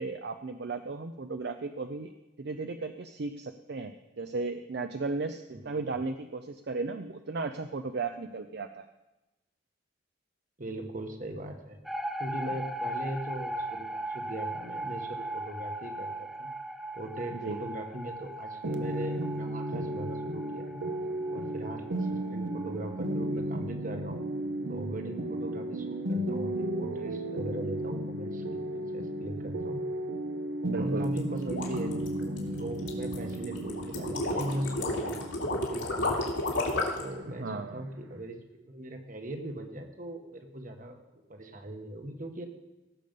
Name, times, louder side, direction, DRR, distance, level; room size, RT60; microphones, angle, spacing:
voice 1, 0.0-2.1 2.4-8.9 17.3-17.6 30.7-31.1 37.4-37.9, right 3 dB, 60° right, 8 dB, 0.5 m, -35 dB
voice 2, 5.5-6.0 10.6-11.8 12.2-16.5 16.9-20.8 21.3-24.3 24.7-29.8 30.7-36.2 37.0-42.5, right 1 dB, 45° right, 5 dB, 1.3 m, -39 dB
sound 1, 11.8-23.0, right 1 dB, ahead, 0.6 m, -39 dB
sound 2, 18.6-38.2, right 1 dB, 80° right, 0.9 m, -34 dB
sound 3, 31.0-37.1, left 2 dB, 80° left, 2.5 m, -32 dB
17.0 x 6.8 x 5.3 m, 1.0 s
head